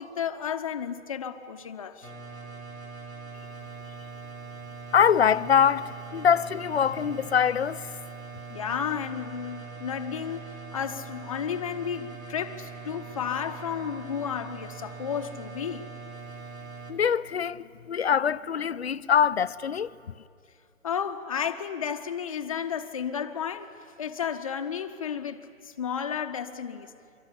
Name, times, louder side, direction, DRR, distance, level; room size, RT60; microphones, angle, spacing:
voice 1, 0.0-2.1 8.5-15.9 20.8-26.9, left 8 dB, 25° left, 0.8 m, -33 dB
sound 1, 2.0-16.9, right 5 dB, 85° right, 3.8 m, -42 dB
voice 2, 4.9-7.8 16.9-19.9, left 7 dB, 50° left, 0.6 m, -23 dB
25.0 x 23.5 x 9.8 m
figure-of-eight pair, 150°, 40 cm